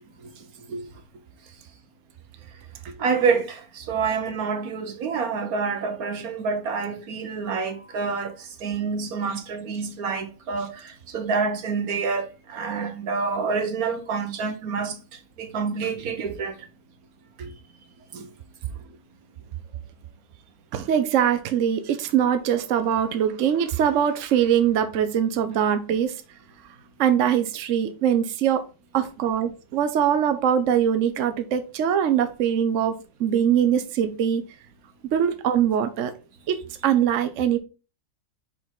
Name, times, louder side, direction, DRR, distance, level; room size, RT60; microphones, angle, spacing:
voice 1, 3.0-8.3 8.6-15.0 15.4-16.5 17.4-17.5 18.1-18.3, right 5 dB, 80° right, 1.5 m, -27 dB
voice 2, 20.7-26.1 27.0-28.6 28.9-34.4 35.1-36.1 36.5-36.6 36.8-37.6, right 9 dB, 65° right, 1.0 m, -22 dB
5.1 x 5.0 x 3.8 m
omnidirectional pair, 1.5 m